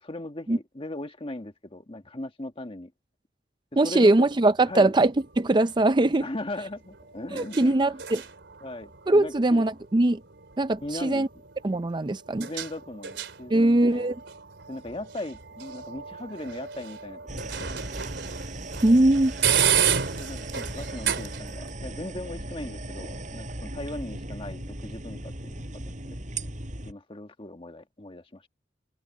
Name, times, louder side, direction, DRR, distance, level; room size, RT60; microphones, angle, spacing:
voice 1, 0.0-2.9 3.8-4.3 4.7-4.9 6.2-7.7 8.6-9.6 10.8-11.3 12.4-14.1 14.7-18.1 20.1-26.2 26.8-28.4, left 1 dB, 30° left, 1.6 m, -38 dB
voice 2, 3.8-6.3 7.3-8.2 9.1-10.2 10.6-11.3 11.6-12.5 13.5-14.2 18.8-19.3, right 2 dB, 25° right, 0.5 m, -21 dB
sound 1, 4.3-21.7, right 8 dB, 85° right, 3.1 m, -33 dB
sound 2, 17.3-26.9, right 1 dB, 45° right, 7.7 m, -37 dB
head